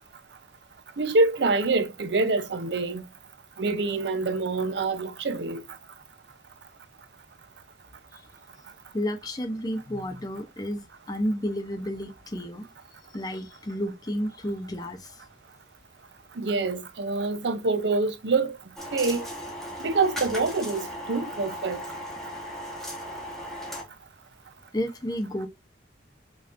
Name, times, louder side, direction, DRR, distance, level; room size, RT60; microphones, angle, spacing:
voice 1, 1.0-3.0 3.6-5.6 16.4-18.6 18.9-19.3 19.8-21.8, right 3 dB, 70° right, 0.6 m, -26 dB
voice 2, 8.9-12.7 13.1-15.2 24.7-25.5, equal, 20° left, 0.7 m, -31 dB
sound 1, 18.8-23.8, equal, ahead, 1.2 m, -37 dB
5.3 x 2.9 x 2.5 m
head